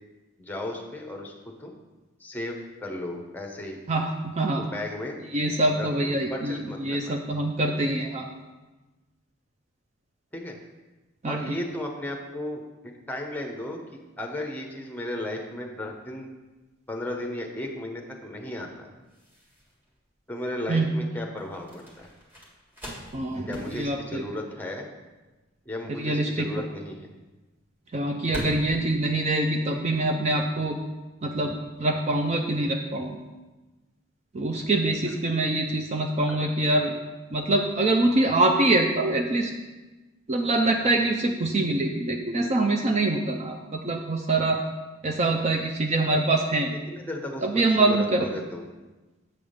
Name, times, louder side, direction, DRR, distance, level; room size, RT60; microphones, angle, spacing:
voice 1, 0.4-1.3 1.6-1.8 2.2-3.8 4.6-5.2 5.8-7.1 10.3-10.6 11.3-12.6 13.1-13.8 14.2-16.3 16.9-18.9 20.3-22.1 23.5-24.9 25.6-27.1 35.1-35.2 36.3-36.5 46.9-48.6, left 1 dB, 10° left, 1 dB, 0.8 m, -35 dB
voice 2, 3.9-4.6 5.3-8.3 11.2-11.6 20.7-20.9 23.1-24.2 25.9-26.6 27.9-30.8 31.2-33.2 34.3-36.9 37.3-39.5 40.3-44.6 45.0-46.7 47.4-48.3, right 2 dB, 30° right, 3 dB, 0.4 m, -24 dB
sound 1, 16.4-30.2, equal, 10° right, 1.7 m, -44 dB
7.7 x 3.6 x 6.4 m, 1.2 s
head